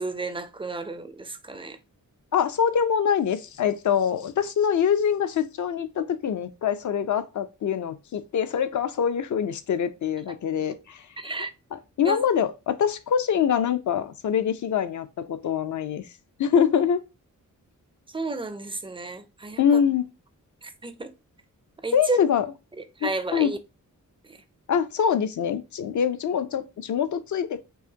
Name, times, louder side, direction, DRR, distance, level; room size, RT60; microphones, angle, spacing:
voice 1, 0.0-1.8 11.2-11.5 12.0-12.2 18.1-19.6 20.6-21.1 21.8-22.2 22.8-23.6 24.2-24.4, right 2 dB, 15° right, 0.4 m, -32 dB
voice 2, 2.3-11.1 11.7-16.1 16.4-17.0 19.6-20.0 21.9-22.5 23.0-23.5 24.7-27.6, left 8 dB, 65° left, 0.4 m, -24 dB
4.6 x 2.5 x 2.7 m
wide cardioid pair, 145°, 32 cm